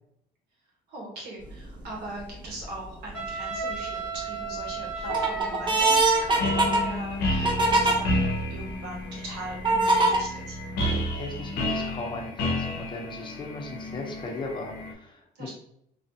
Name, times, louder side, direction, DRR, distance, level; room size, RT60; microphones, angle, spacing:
voice 1, 0.9-8.1 8.5-10.6 15.3-15.5, right 2 dB, 85° right, -3 dB, 1.3 m, -40 dB
sound 1, 1.5-1.8 2.4-3.1 3.6-4.2 4.7-7.9 8.6-8.7 9.6-10.2, right 2 dB, 30° right, 0.7 m, -23 dB
Wind instrument woodwind instrument, 3.1-7.0, right 3 dB, 5° right, 1.1 m, -34 dB
sound 2, 6.2-14.9, left 1 dB, 70° left, 0.6 m, -31 dB
voice 2, 10.7-15.5, left 2 dB, 30° left, 0 dB, 0.8 m, -38 dB
3.1 x 2.4 x 2.8 m, 0.72 s
cardioid pair, 110°, 17 cm